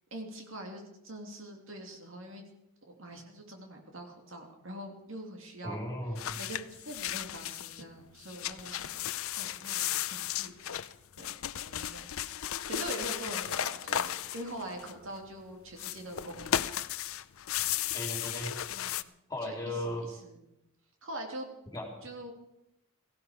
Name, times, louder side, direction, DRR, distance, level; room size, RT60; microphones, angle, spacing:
voice 1, 0.1-2.4 2.9-5.8 6.4-10.8 11.2-12.0 12.7-16.8 18.7-19.0 19.5-20.4 21.0-21.5 22.0-22.3, right 1 dB, 60° right, 2 dB, 2.6 m, -44 dB
voice 2, 5.6-6.3 17.9-18.5 19.3-20.1 21.7-21.9, left 1 dB, 15° left, 0 dB, 3.6 m, -36 dB
sound 1, 6.2-7.8 8.2-15.2 15.7-19.0, left 11 dB, 70° left, 0.5 m, -35 dB
17.5 x 15.5 x 5.0 m, 0.86 s
head